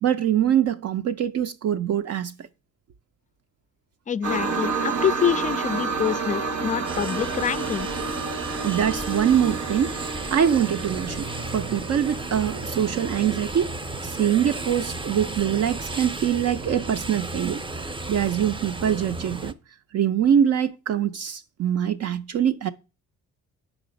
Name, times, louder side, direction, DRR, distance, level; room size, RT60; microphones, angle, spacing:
voice 1, 0.0-2.5 8.6-10.0 10.3-13.7 14.0-17.6 18.1-19.5 19.9-22.7, right 9 dB, 55° right, 0.6 m, -23 dB
voice 2, 4.1-7.9, left 8 dB, 25° left, 0.3 m, -26 dB
sound 1, 4.2-13.0 13.6-13.7, right 4 dB, 75° right, 1.1 m, -30 dB
sound 2, 6.9-19.5, right 2 dB, 15° right, 0.6 m, -34 dB
6.7 x 5.0 x 5.1 m
cardioid pair, 90°, 30 cm